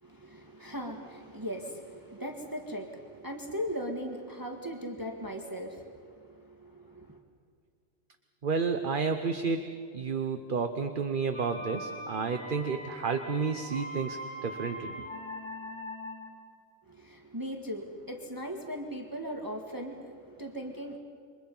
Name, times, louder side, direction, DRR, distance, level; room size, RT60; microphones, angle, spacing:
voice 1, 0.0-7.2 16.9-21.0, equal, 15° right, 2 dB, 1.8 m, -39 dB
voice 2, 8.4-14.9, right 5 dB, 45° right, 7 dB, 1.1 m, -31 dB
sound 1, 11.3-16.4, equal, 20° left, 3.1 m, -41 dB
28.0 x 24.5 x 5.5 m, 2.2 s
omnidirectional pair, 1.3 m